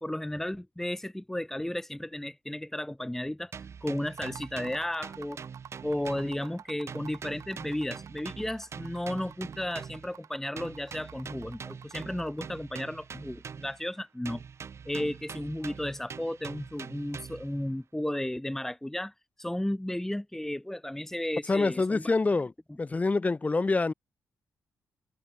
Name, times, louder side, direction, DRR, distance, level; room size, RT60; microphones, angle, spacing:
voice 1, 0.0-3.5 3.8-5.4 5.8-14.4 14.8-19.1 19.4-22.1, left 1 dB, 5° left, 1.8 m, -34 dB
sound 1, 3.5-6.6 6.9-10.1 10.6-13.9 14.2-17.6, right 6 dB, 50° right, 4.9 m, -44 dB
sound 2, 4.0-12.6, right 9 dB, 70° right, 7.4 m, -50 dB
voice 2, 21.5-22.5 22.8-23.9, left 3 dB, 25° left, 2.2 m, -26 dB
cardioid pair, 90°, 6 cm